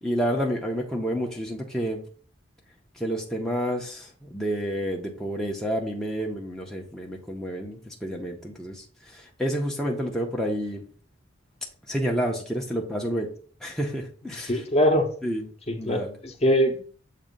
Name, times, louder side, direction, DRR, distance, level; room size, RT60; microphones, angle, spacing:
voice 1, 0.0-2.0 2.9-10.8 11.9-13.3 13.6-14.6 15.2-15.4 15.8-16.1, equal, 5° left, -1 dB, 0.6 m, -29 dB
voice 2, 14.5-15.1 15.7-16.9, equal, 30° left, 4 dB, 0.9 m, -23 dB
7.4 x 2.6 x 5.2 m, 0.44 s
head